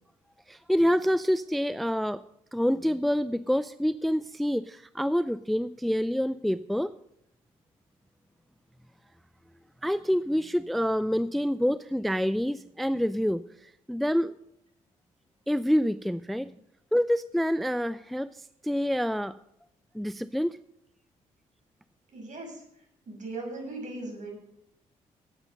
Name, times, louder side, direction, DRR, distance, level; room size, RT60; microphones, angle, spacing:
voice 1, 0.5-2.2 2.5-6.9 9.8-14.3 15.5-16.5 16.9-19.3 19.9-20.6, equal, ahead, 14 dB, 0.5 m, -27 dB
voice 2, 22.1-22.5 23.1-24.4, right 2 dB, 50° right, 1 dB, 6.5 m, -38 dB
15.0 x 9.0 x 5.4 m, 0.76 s
hypercardioid pair, 45°, 17 cm